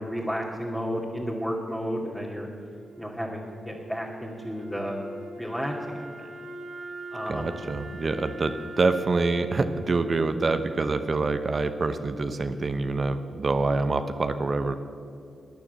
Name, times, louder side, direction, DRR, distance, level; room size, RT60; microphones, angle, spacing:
voice 1, 0.0-2.5 3.0-5.0 5.4-6.0 7.1-7.5, equal, ahead, -4 dB, 2.3 m, -32 dB
Wind instrument woodwind instrument, 2.6-11.6, right 1 dB, 70° right, 2.7 m, -42 dB
voice 2, 7.3-14.7, right 3 dB, 50° right, 9 dB, 1.0 m, -26 dB
14.0 x 9.7 x 8.1 m, 2.5 s
supercardioid pair, 40°, 0 cm